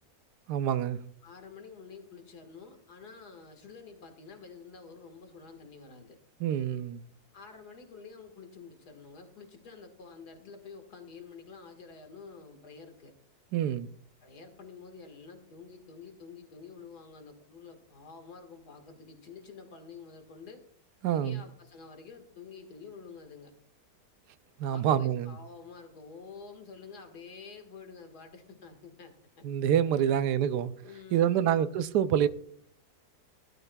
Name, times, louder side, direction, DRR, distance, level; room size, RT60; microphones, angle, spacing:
voice 1, 0.5-1.0 6.4-7.0 13.5-13.9 21.0-21.4 24.6-25.4 29.4-30.7 31.1-32.3, right 9 dB, 85° right, 1.2 m, -26 dB
voice 2, 1.2-6.2 7.3-13.1 14.2-20.6 21.1-23.5 24.6-29.5 30.0-30.1 30.8-31.6, left 5 dB, 75° left, 2.2 m, -49 dB
17.5 x 12.0 x 2.3 m
omnidirectional pair, 1.7 m